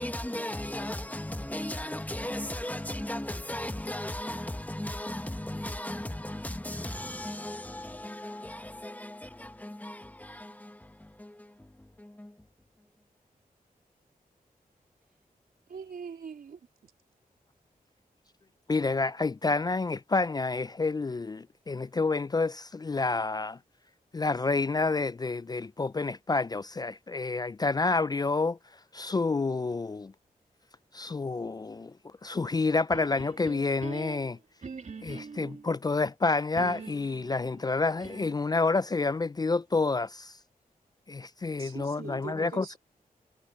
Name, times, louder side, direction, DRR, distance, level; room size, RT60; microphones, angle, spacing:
voice 1, 0.0-12.5, left 1 dB, 10° left, 1.6 m, -37 dB
voice 2, 15.7-16.9 41.6-42.8, right 6 dB, 85° right, 3.4 m, -43 dB
voice 3, 18.7-23.6 24.1-28.6 28.9-30.1 30.9-31.9 32.2-34.4 35.0-40.3 41.1-42.8, left 3 dB, 25° left, 0.3 m, -29 dB
sound 1, 32.9-35.7 36.6-38.5, right 4 dB, 55° right, 2.8 m, -44 dB
wide cardioid pair, 105°, 15 cm